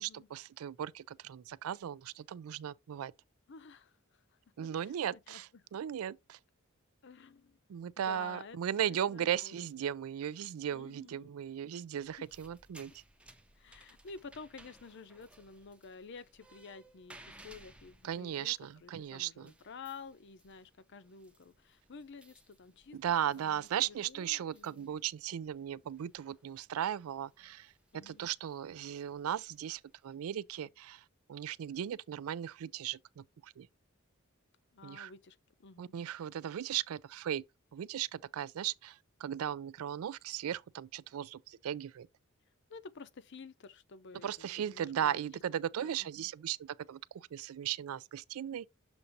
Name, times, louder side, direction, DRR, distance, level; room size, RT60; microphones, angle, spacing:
voice 1, 0.0-3.1 4.6-6.4 7.7-12.9 18.0-19.5 22.9-33.7 34.8-35.1 35.8-37.4 37.7-42.1 44.2-48.7, right 10 dB, 85° right, 0.3 m, -37 dB
voice 2, 3.5-4.2 4.8-5.7 7.0-7.6 8.0-9.6 10.7-11.3 12.2-12.3 13.6-23.0 23.4-25.0 27.9-28.3 34.7-36.0 42.7-45.2 45.7-46.3, left 5 dB, 55° left, 0.6 m, -51 dB
sound 1, 12.0-30.1, right 1 dB, 5° right, 0.6 m, -62 dB
7.0 x 2.5 x 5.2 m
head